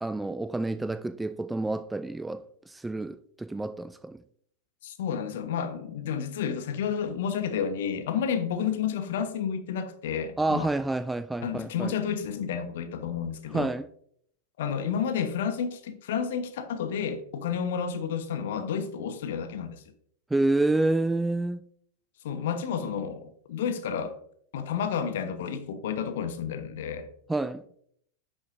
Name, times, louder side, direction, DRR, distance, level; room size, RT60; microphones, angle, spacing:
voice 1, 0.0-4.2 10.4-11.9 13.5-13.9 20.3-21.6 27.3-27.6, right 2 dB, 5° right, 0.3 m, -28 dB
voice 2, 4.8-10.7 11.4-13.7 14.6-19.8 22.2-24.1 24.5-27.1, left 7 dB, 55° left, 1.0 m, -31 dB
11.0 x 6.4 x 2.6 m
figure-of-eight pair, 90°, 0 cm